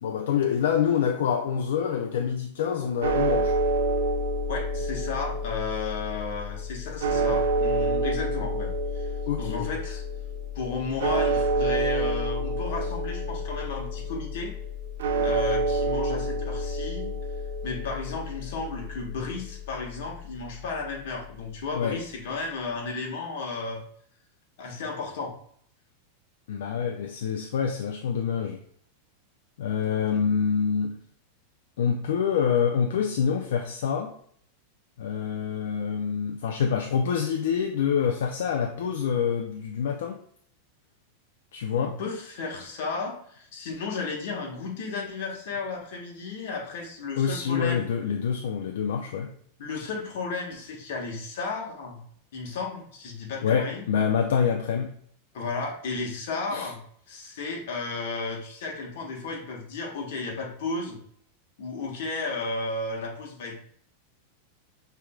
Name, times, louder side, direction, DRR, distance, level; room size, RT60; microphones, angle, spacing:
voice 1, 0.0-3.6 9.3-9.7 21.7-22.0 26.5-28.6 29.6-31.0 31.8-34.1 35.0-40.2 41.5-42.0 47.2-49.3 53.4-54.9 56.5-56.7, left 7 dB, 80° left, 4 dB, 0.5 m, -26 dB
sound 1, 3.0-21.3, right 1 dB, 90° right, 0.5 m, -29 dB
voice 2, 4.5-10.0 10.5-14.5 15.2-17.1 17.6-23.8 24.6-25.3 30.0-30.2 41.7-48.0 49.6-52.0 52.3-53.8 55.3-56.8 57.1-61.0 61.6-63.5, left 4 dB, 60° left, -1 dB, 1.4 m, -33 dB
6.0 x 3.4 x 2.3 m, 0.62 s
supercardioid pair, 170°, 0 cm